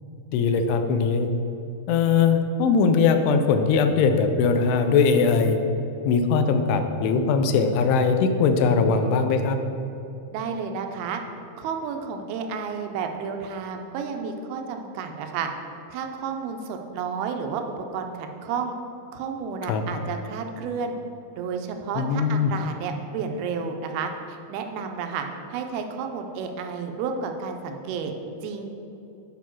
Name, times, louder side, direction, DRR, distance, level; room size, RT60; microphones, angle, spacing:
voice 1, 0.3-1.3 1.9-5.6 6.1-9.6 19.7-19.8 22.0-22.5, left 5 dB, 90° left, 7 dB, 2.7 m, -20 dB
voice 2, 10.3-11.2 11.6-15.5 15.9-18.7 19.1-21.0 21.4-28.1 28.4-28.6, right 6 dB, 80° right, 5 dB, 2.4 m, -31 dB
9.1 x 5.5 x 4.5 m, 2.9 s
omnidirectional pair, 4.6 m